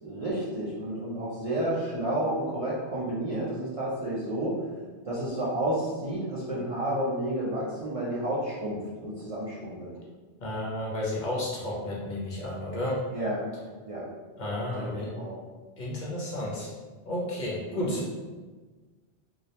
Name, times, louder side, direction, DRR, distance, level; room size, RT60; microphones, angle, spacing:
voice 1, 0.0-4.5 5.0-9.9 13.1-13.5 13.9-14.0 14.8-14.9 15.1-15.3 17.7-18.0, right 1 dB, 50° right, -8 dB, 0.4 m, -31 dB
voice 2, 10.4-13.0 14.4-15.2 15.8-16.7 17.1-18.1, left 1 dB, 55° left, -5 dB, 0.6 m, -32 dB
2.3 x 2.0 x 2.7 m, 1.3 s
omnidirectional pair, 1.1 m